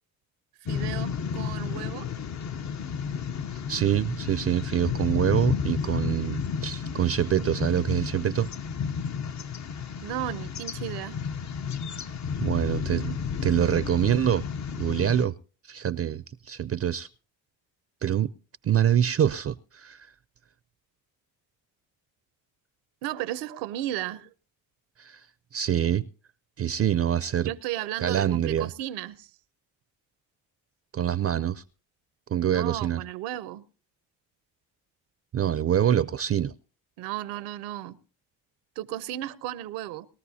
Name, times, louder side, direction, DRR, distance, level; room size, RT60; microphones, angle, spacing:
voice 1, 0.6-2.1 10.0-11.2 23.0-24.3 27.4-29.3 32.4-33.7 37.0-38.0 38.8-40.1, right 13 dB, 85° right, 0.8 m, -34 dB
sound 1, 0.7-15.2, left 6 dB, 45° left, 0.8 m, -32 dB
voice 2, 3.5-8.5 11.9-12.0 12.4-13.2 13.4-14.5 14.8-15.3 15.6-17.1 18.0-18.3 18.6-20.1 25.0-25.3 25.5-26.0 26.6-27.5 28.0-28.7 30.9-31.6 32.3-33.0 35.3-36.5, right 10 dB, 35° right, 0.5 m, -25 dB
20.5 x 13.5 x 2.8 m
supercardioid pair, 60°, 40 cm